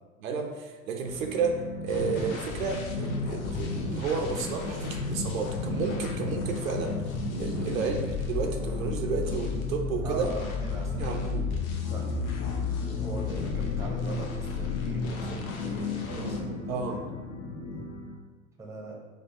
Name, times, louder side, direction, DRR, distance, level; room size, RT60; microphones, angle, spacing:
voice 1, 0.2-10.3 10.9-11.5 16.7-17.0, right 5 dB, 80° right, 3 dB, 0.6 m, -32 dB
sound 1, 1.1-18.1, left 1 dB, 65° left, 1.1 m, -41 dB
sound 2, 1.9-16.4, left 4 dB, 85° left, 0.6 m, -33 dB
voice 2, 10.0-11.4 11.9-12.3 12.7-17.0 17.3-17.8 18.6-19.0, right 2 dB, 5° right, -1 dB, 0.6 m, -40 dB
sound 3, 11.8-17.8, left 5 dB, 40° left, 0.5 m, -40 dB
4.4 x 2.3 x 2.5 m, 1.3 s
hypercardioid pair, 85°, 40 cm